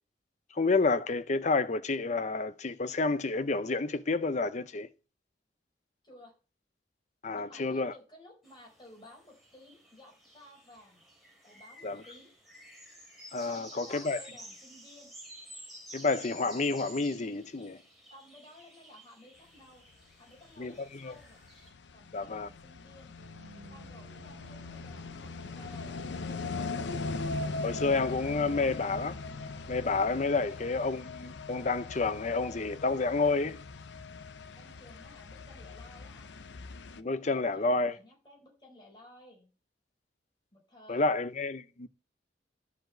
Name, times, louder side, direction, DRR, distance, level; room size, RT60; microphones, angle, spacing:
voice 1, 0.5-4.9 7.2-7.9 11.8-12.0 13.3-14.2 15.9-17.8 20.6-21.1 22.1-22.5 27.6-29.2 29.7-33.6 37.0-37.9 40.9-41.9, left 3 dB, 40° left, 0.6 m, -29 dB
voice 2, 6.0-6.3 7.3-11.0 11.4-12.3 13.4-15.1 18.1-19.8 20.2-21.4 21.9-23.1 23.7-26.8 28.5-28.7 30.4-30.7 34.5-36.3 37.3-39.5 40.5-41.1, left 1 dB, 25° left, 4.5 m, -55 dB
sound 1, 8.4-21.7, right 1 dB, ahead, 3.1 m, -52 dB
sound 2, 20.4-37.0, left 3 dB, 80° left, 0.6 m, -40 dB
sound 3, 23.2-30.2, right 2 dB, 70° right, 1.0 m, -54 dB
11.0 x 5.1 x 7.8 m
head